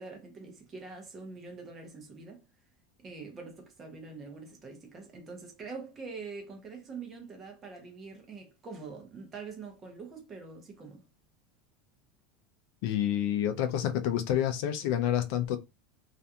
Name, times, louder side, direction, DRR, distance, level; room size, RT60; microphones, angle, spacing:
voice 1, 0.0-2.4 3.0-11.0, right 4 dB, 20° right, 0.7 m, -44 dB
voice 2, 12.8-15.6, left 10 dB, 55° left, 0.4 m, -28 dB
2.4 x 2.3 x 2.7 m
supercardioid pair, 170°, 0 cm